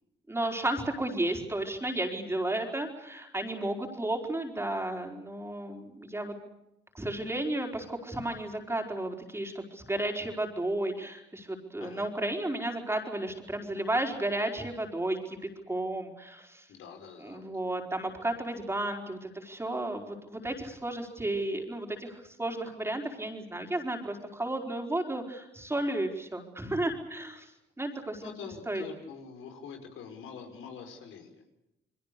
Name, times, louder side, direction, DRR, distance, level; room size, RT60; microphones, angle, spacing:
voice 1, 0.3-6.3 6.9-15.4 15.7-16.7 17.2-27.5 27.8-28.4 28.7-28.8, right 1 dB, 10° right, 2 dB, 4.6 m, -33 dB
voice 2, 16.7-17.5 28.2-31.3, left 6 dB, 80° left, 5 dB, 5.5 m, -45 dB
29.5 x 22.0 x 6.8 m, 0.88 s
cardioid pair, 90°, 20 cm